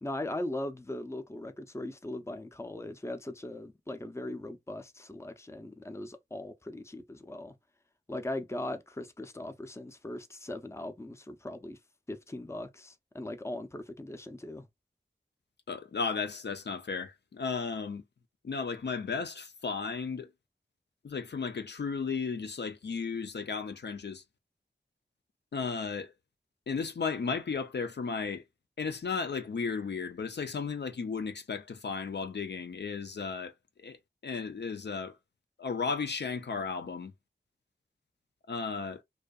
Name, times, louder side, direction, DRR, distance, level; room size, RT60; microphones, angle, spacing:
voice 1, 0.0-7.5 8.1-11.8 12.1-14.6, left 1 dB, 15° left, 0.5 m, -39 dB
voice 2, 15.7-18.0 18.4-20.3 21.0-24.2 25.5-26.1 26.7-28.4 28.8-33.5 33.8-34.0 34.2-35.2 35.6-37.1 38.5-39.0, left 5 dB, 65° left, 0.4 m, -34 dB
2.6 x 2.3 x 2.3 m
wide cardioid pair, 45°, 19 cm